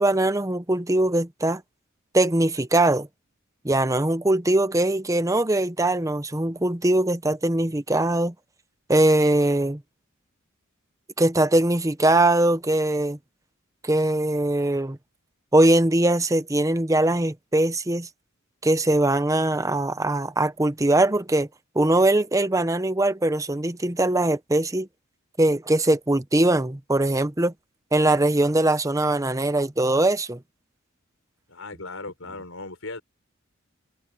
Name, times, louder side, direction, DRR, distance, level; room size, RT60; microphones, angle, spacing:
voice 1, 0.0-1.6 2.1-3.1 3.6-8.3 8.9-9.8 11.2-13.2 13.8-15.0 15.5-18.1 18.6-21.5 21.7-24.9 25.4-27.5 27.9-30.4, right 1 dB, 15° right, 0.9 m, -21 dB
voice 2, 31.5-33.0, left 3 dB, 75° left, 5.5 m, -37 dB
head